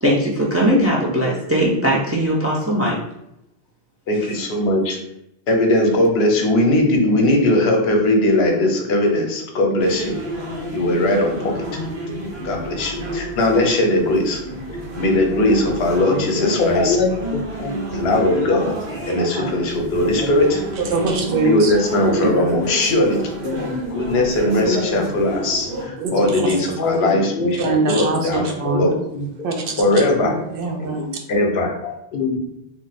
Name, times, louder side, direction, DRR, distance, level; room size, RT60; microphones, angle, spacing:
voice 1, 0.0-3.0, equal, 25° right, -4 dB, 0.3 m, -19 dB
voice 2, 4.1-5.0 5.5-10.2 10.7-11.7 12.4-14.4 15.0-17.0 17.9-18.7 19.1-20.6 21.4-23.2 23.9-29.0 29.8-30.4 30.8-30.9 31.3-31.7, left 1 dB, 85° left, 2 dB, 0.9 m, -19 dB
sound 1, 9.8-25.8, right 1 dB, 85° right, 1.2 m, -30 dB
voice 3, 16.1-17.8 18.3-18.6 19.4-19.6 20.2-20.3 22.1-22.3 23.4-23.9 24.2-25.0 26.1-26.2 26.8-27.0 27.4-27.5 28.6-29.3 29.9-30.0 31.0-31.2 31.8-32.4, left 3 dB, 60° left, 1 dB, 0.6 m, -24 dB
voice 4, 20.7-21.7 22.2-22.3 26.0-26.6 27.5-28.8 29.4-31.1, right 3 dB, 65° right, 2 dB, 0.7 m, -23 dB
2.5 x 2.1 x 3.9 m, 0.82 s
omnidirectional pair, 1.1 m